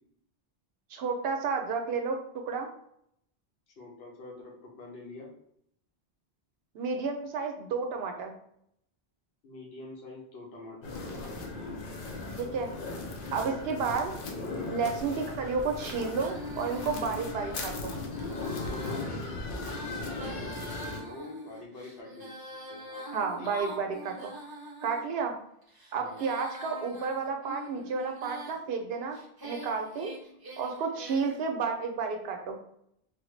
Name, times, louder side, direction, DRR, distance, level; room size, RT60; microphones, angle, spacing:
voice 1, 0.9-2.2 2.4-2.7 6.7-8.3 12.4-12.7 13.3-14.1 14.7-17.9 23.1-24.3 24.8-25.4 25.9-29.2 29.4-30.1 30.6-32.6, right 5 dB, 80° right, 4 dB, 0.8 m, -31 dB
voice 2, 3.8-5.3 9.4-11.8 19.2-23.5 26.0-26.3, left 2 dB, 85° left, -2 dB, 1.0 m, -46 dB
sound 1, 10.8-21.0, left 3 dB, 65° left, 0.7 m, -37 dB
Female singing, 16.1-25.0 25.6-28.6 29.1-31.4, equal, 30° right, 0.5 m, -44 dB
3.2 x 2.1 x 3.1 m, 0.72 s
omnidirectional pair, 1.0 m